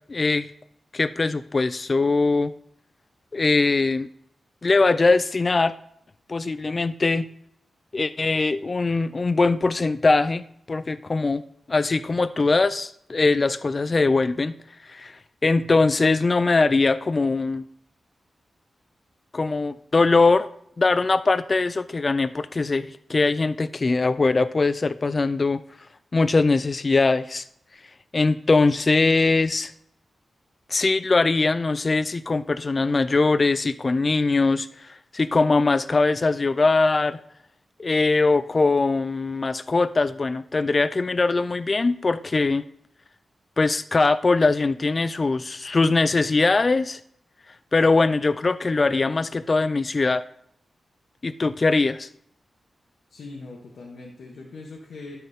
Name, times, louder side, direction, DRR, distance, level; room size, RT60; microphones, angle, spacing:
voice 1, 0.1-0.5 0.9-2.5 3.3-4.1 4.6-5.7 6.3-7.3 7.9-11.4 11.7-14.5 14.8-17.6 19.3-20.5 20.8-25.6 26.1-27.4 28.1-29.7 30.7-37.2 37.8-42.6 43.6-47.0 47.7-50.2 51.2-52.1, left 3 dB, 40° left, 13 dB, 0.3 m, -21 dB
voice 2, 53.1-55.2, left 3 dB, 85° left, -2 dB, 1.2 m, -41 dB
12.5 x 4.2 x 3.5 m, 0.70 s
cardioid pair, 75°, 0 cm